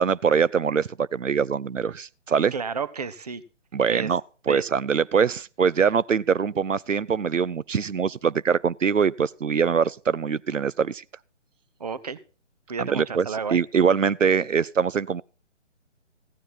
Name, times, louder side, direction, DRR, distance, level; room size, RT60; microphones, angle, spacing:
voice 1, 0.0-2.5 3.7-4.2 4.5-11.0 12.8-15.2, right 6 dB, 90° right, 0.5 m, -23 dB
voice 2, 2.5-3.4 3.9-4.1 4.5-4.7 11.8-12.2 12.7-13.6, right 5 dB, 30° right, 0.8 m, -31 dB
15.5 x 9.9 x 4.3 m
figure-of-eight pair, 145°, 37 cm